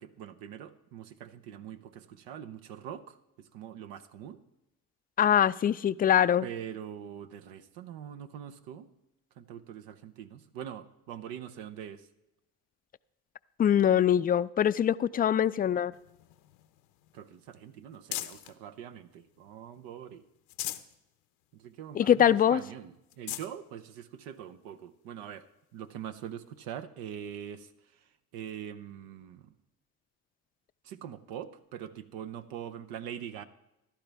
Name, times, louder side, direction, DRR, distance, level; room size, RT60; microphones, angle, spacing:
voice 1, 0.0-4.4 6.4-8.9 9.4-12.1 17.1-20.2 21.5-25.4 25.7-29.5 30.8-33.4, right 9 dB, 80° right, 9 dB, 0.8 m, -43 dB
voice 2, 5.2-6.5 13.6-15.9 22.0-22.6, left 9 dB, 25° left, 16 dB, 0.4 m, -23 dB
sound 1, 15.9-18.6 19.1-19.9 20.3-21.0 21.4-21.5 21.9-22.0 22.6-22.7 23.0-23.5 24.3-24.4 26.2-26.3, left 15 dB, 85° left, 0.7 m, -41 dB
14.5 x 12.0 x 3.4 m, 0.89 s
supercardioid pair, 75°, 34 cm